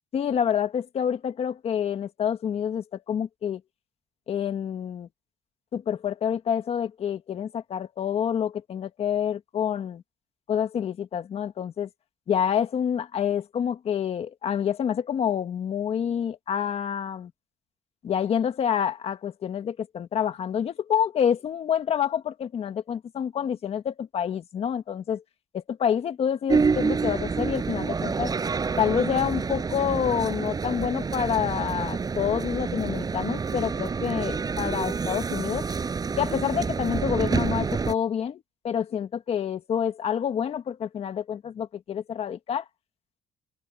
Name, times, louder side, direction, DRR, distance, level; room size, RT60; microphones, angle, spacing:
voice 1, 0.1-3.6 4.3-5.1 5.7-10.0 10.5-11.9 12.3-17.3 18.0-25.2 25.5-28.3 28.8-35.6 36.2-42.7, left 8 dB, 45° left, 1.8 m, -28 dB
sound 1, 26.5-37.9, right 5 dB, 25° right, 6.9 m, -28 dB
cardioid pair, 125°, 14 cm